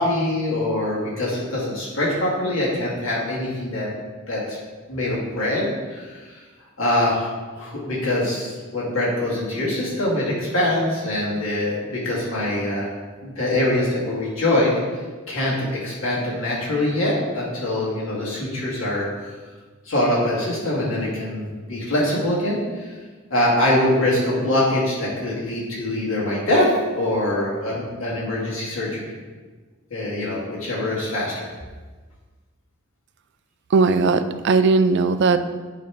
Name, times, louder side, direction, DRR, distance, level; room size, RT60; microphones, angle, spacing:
voice 1, 0.0-3.9 4.3-4.6 4.9-6.2 6.8-12.9 13.2-14.8 15.3-15.5 15.8-19.1 19.8-22.9 23.3-29.1 29.9-31.5, left 1 dB, 70° left, -6 dB, 2.4 m, -23 dB
voice 2, 33.7-35.4, right 4 dB, 55° right, 10 dB, 0.4 m, -18 dB
9.2 x 3.3 x 4.9 m, 1.4 s
head